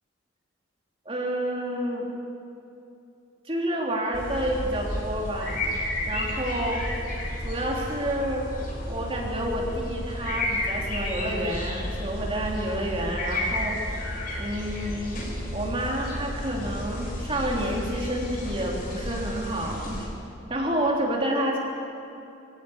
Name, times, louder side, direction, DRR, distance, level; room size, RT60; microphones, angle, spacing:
voice 1, 1.0-2.1 3.4-6.8 7.4-8.5 8.9-14.0 14.4-15.2 15.5-20.1 20.5-21.6, right 1 dB, 30° right, -2 dB, 3.4 m, -29 dB
sound 1, 4.1-20.1, left 1 dB, 45° left, 4.8 m, -32 dB
22.5 x 16.5 x 8.7 m, 2.7 s
head